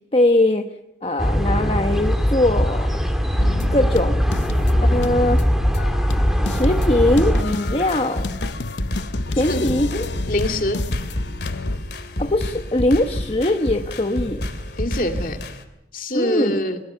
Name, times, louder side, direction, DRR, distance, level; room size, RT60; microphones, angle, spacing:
voice 1, 0.1-0.7 1.0-2.9 3.7-4.2 4.8-5.4 6.4-8.3 9.3-10.0 12.2-14.4 16.1-16.6, left 1 dB, 30° left, 5 dB, 1.1 m, -21 dB
sound 1, 1.2-7.4, equal, ahead, 2.2 m, -20 dB
sound 2, 3.4-11.8, left 3 dB, 85° left, 0.7 m, -31 dB
sound 3, 7.5-15.6, left 1 dB, 70° left, 2.6 m, -29 dB
voice 2, 10.3-10.8 14.8-15.4 15.9-16.8, left 1 dB, 50° left, 5 dB, 2.5 m, -24 dB
22.5 x 20.0 x 6.9 m, 0.85 s
head